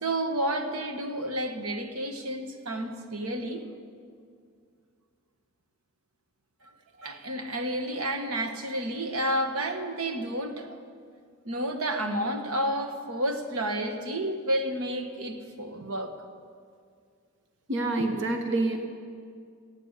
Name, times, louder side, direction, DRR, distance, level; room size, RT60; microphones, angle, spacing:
voice 1, 0.0-3.6 7.0-10.8 11.4-16.1, right 1 dB, 80° right, 6 dB, 1.4 m, -30 dB
voice 2, 17.7-18.9, right 2 dB, 55° right, 5 dB, 1.1 m, -27 dB
18.0 x 9.0 x 8.2 m, 2.2 s
head